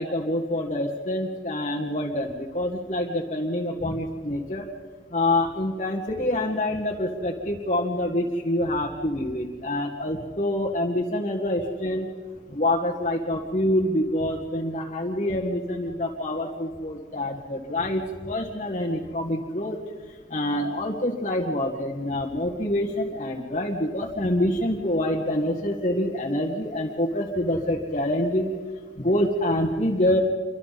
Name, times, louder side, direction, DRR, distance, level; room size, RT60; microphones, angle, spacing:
voice 1, 0.0-4.7 5.1-12.1 12.5-19.8 20.3-28.5 29.0-30.2, left 1 dB, 40° left, -2 dB, 1.8 m, -26 dB
27.5 x 24.0 x 4.2 m, 1.6 s
head